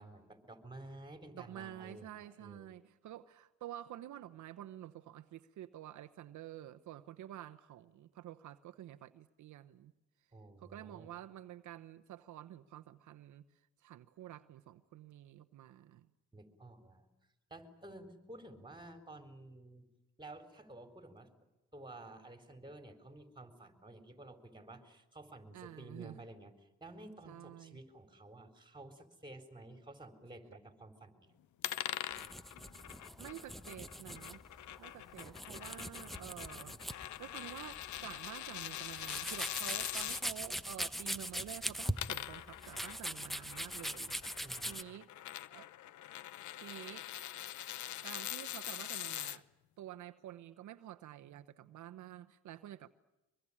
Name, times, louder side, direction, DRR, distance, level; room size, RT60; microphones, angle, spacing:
voice 1, 0.0-2.7 10.3-11.1 16.3-17.0 17.5-19.9 20.2-21.3 21.7-26.5 26.8-31.3 44.4-44.8, right 2 dB, 15° right, 9 dB, 4.2 m, -52 dB
voice 2, 1.3-9.9 10.6-13.5 13.8-16.1 25.5-26.2 27.3-27.8 33.2-34.4 34.8-36.8 37.2-45.1 45.5-45.7 46.6-47.1 48.0-49.5 49.8-52.9, right 12 dB, 75° right, 10 dB, 1.0 m, -49 dB
sound 1, 31.6-40.2 41.7-49.4, left 13 dB, 70° left, 0.9 m, -44 dB
sound 2, 32.1-44.8, equal, ahead, 1.1 m, -42 dB
23.5 x 23.5 x 10.0 m, 1.0 s
cardioid pair, 90°, 30 cm